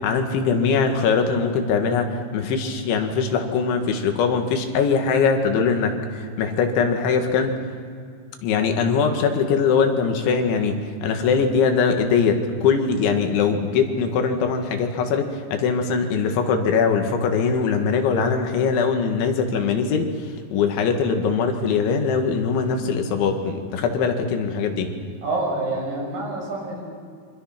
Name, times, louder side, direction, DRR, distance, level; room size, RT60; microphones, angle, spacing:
voice 1, 0.0-7.5 8.4-24.9, left 5 dB, 90° left, 5 dB, 4.3 m, -21 dB
voice 2, 25.2-26.8, right 2 dB, 50° right, -2 dB, 7.8 m, -27 dB
28.0 x 24.5 x 6.0 m, 2.2 s
omnidirectional pair, 5.2 m